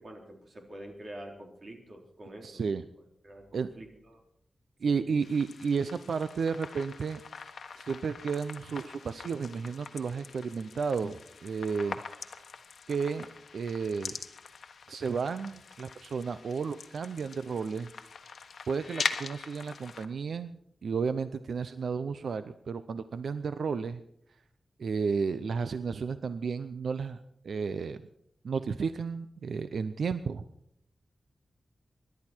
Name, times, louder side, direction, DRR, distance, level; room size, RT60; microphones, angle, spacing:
voice 1, 0.0-2.6 3.2-4.2 4.8-5.2, right 1 dB, 45° right, 2 dB, 3.8 m, -47 dB
voice 2, 2.4-2.8 3.5-3.7 4.8-7.2 7.8-12.0 12.9-13.3 13.5-14.1 14.9-17.9 18.7-24.0 24.8-28.0 28.4-30.4, right 5 dB, 80° right, 11 dB, 0.6 m, -32 dB
sound 1, 5.2-20.1, left 5 dB, 85° left, 1.2 m, -42 dB
26.0 x 12.0 x 4.5 m, 0.73 s
wide cardioid pair, 150°, 0 cm